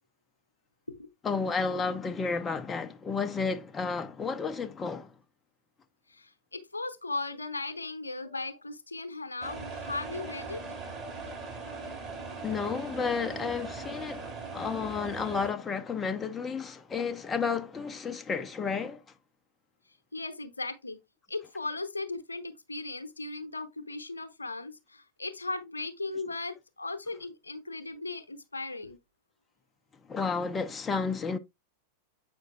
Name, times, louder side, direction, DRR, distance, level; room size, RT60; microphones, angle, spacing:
voice 1, 1.2-5.1 12.4-19.0 30.1-31.4, left 5 dB, 20° left, 0.5 m, -32 dB
voice 2, 6.1-10.6 20.1-21.0 21.3-29.0 30.9-31.0, left 3 dB, 80° left, 0.7 m, -37 dB
sound 1, 9.4-15.5, right 4 dB, 30° right, 2.6 m, -40 dB
7.7 x 5.2 x 2.4 m
figure-of-eight pair, 90°, 0 cm